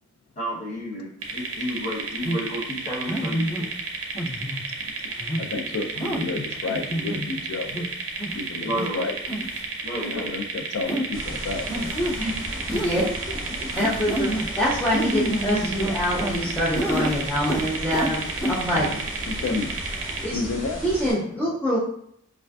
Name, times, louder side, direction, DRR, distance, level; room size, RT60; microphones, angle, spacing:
voice 1, 0.4-3.7 8.6-9.0 9.8-10.3, equal, 35° left, -5 dB, 0.7 m, -31 dB
sound 1, 1.2-20.3, right 4 dB, 90° right, 0.5 m, -32 dB
sound 2, 2.2-2.4 3.1-3.6 4.1-4.6 5.2-5.4 6.0-6.2 6.7-7.2 7.7-7.8 8.2-8.4 8.7-8.9 9.3-9.6 10.0-10.1 10.9-11.0 11.7-12.2 12.7-13.1 13.7-14.4 14.9-16.4 16.7-17.2 17.4-18.1 18.4-18.5, equal, 60° left, 1.1 m, -28 dB
voice 2, 5.4-7.9 8.3-9.1 10.1-12.0 18.7-19.7 20.3-20.8 21.2-21.6, left 3 dB, 85° left, 6 dB, 0.3 m, -31 dB
sound 3, 11.1-21.1, equal, 10° right, 0.9 m, -36 dB
voice 3, 12.7-13.4 13.8-18.2 18.5-18.9 20.2-20.4 20.8-21.8, equal, 10° left, -7 dB, 0.3 m, -25 dB
2.4 x 2.4 x 2.2 m, 0.68 s
head